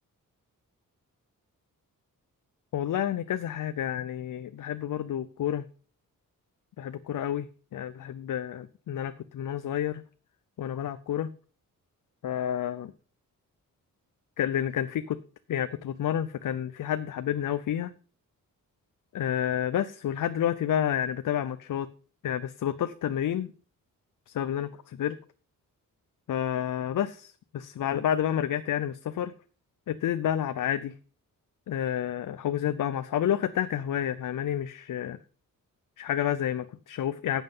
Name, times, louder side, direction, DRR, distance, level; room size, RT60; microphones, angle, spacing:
voice 1, 2.7-5.6 6.8-7.5 7.7-10.0 10.6-11.3 12.2-12.9 14.4-15.2 15.5-17.9 19.1-21.9 22.2-23.5 24.3-25.2 26.3-29.3 29.9-30.9 31.7-35.2 36.0-37.4, left 10 dB, 65° left, 12 dB, 0.6 m, -29 dB
11.0 x 7.4 x 5.4 m, 0.39 s
wide cardioid pair, 120°, 34 cm